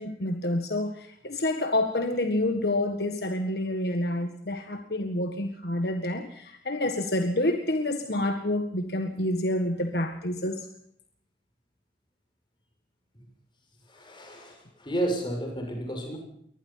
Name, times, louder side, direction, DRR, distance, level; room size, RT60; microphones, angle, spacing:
voice 1, 0.0-10.7, left 1 dB, 60° left, 5 dB, 1.7 m, -28 dB
voice 2, 13.9-16.2, right 1 dB, 25° left, 2 dB, 6.6 m, -32 dB
23.5 x 19.5 x 5.7 m, 0.69 s
head